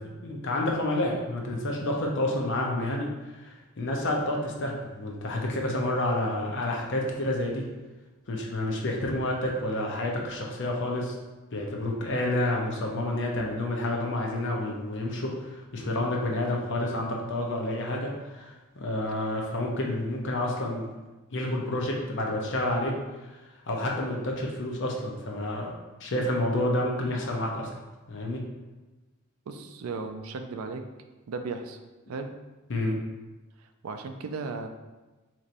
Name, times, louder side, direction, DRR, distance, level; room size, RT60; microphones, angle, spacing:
voice 1, 0.2-7.7 8.3-11.1 11.5-20.8 21.3-23.0 23.7-25.7 26.0-27.7 28.1-28.4 32.7-33.0, left 1 dB, 60° left, 0 dB, 0.6 m, -29 dB
voice 2, 29.5-30.8 31.3-31.8 32.1-32.3 33.6-34.7, right 4 dB, 70° right, 6 dB, 0.4 m, -36 dB
4.1 x 3.0 x 2.5 m, 1.2 s
head